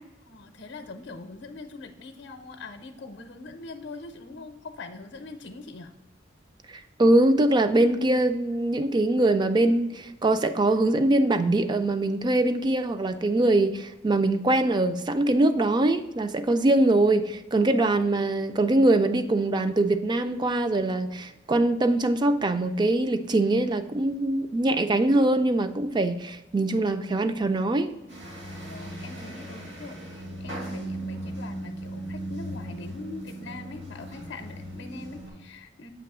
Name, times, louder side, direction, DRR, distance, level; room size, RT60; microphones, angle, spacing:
voice 1, 0.2-5.9 28.7-35.9, left 3 dB, 65° left, 6 dB, 0.6 m, -42 dB
voice 2, 7.0-27.9, right 2 dB, 25° right, 10 dB, 0.4 m, -23 dB
sound 1, 28.1-35.3, right 1 dB, 70° right, 2.1 m, -38 dB
7.6 x 3.0 x 6.0 m, 1.0 s
head